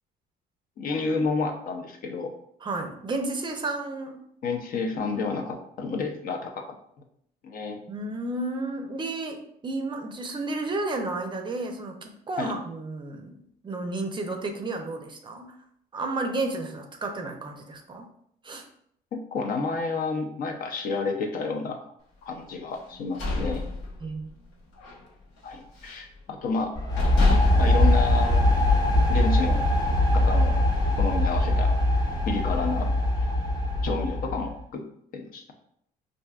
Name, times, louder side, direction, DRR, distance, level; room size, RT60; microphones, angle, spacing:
voice 1, 0.8-2.3 4.4-6.7 7.4-7.8 12.4-12.5 19.1-21.9 22.2-23.6 25.4-26.8 27.6-28.5 29.1-29.6 30.1-30.6 31.0-31.7 32.3-32.9 33.8-34.8 35.1-35.5, left 4 dB, 55° left, 3 dB, 0.6 m, -30 dB
voice 2, 2.6-4.2 7.9-13.4 13.6-15.5 15.9-18.1 18.4-18.6 24.0-24.3, right 2 dB, 30° right, 5 dB, 0.5 m, -32 dB
sound 1, 22.8-24.4 24.8-25.0 25.4-26.1 26.6-26.7 27.0-28.8, left 3 dB, 85° left, 1.1 m, -28 dB
sound 2, 26.7-34.5, left 1 dB, 25° left, 0.9 m, -22 dB
4.5 x 2.6 x 2.3 m, 0.70 s
cardioid pair, 110°, 17 cm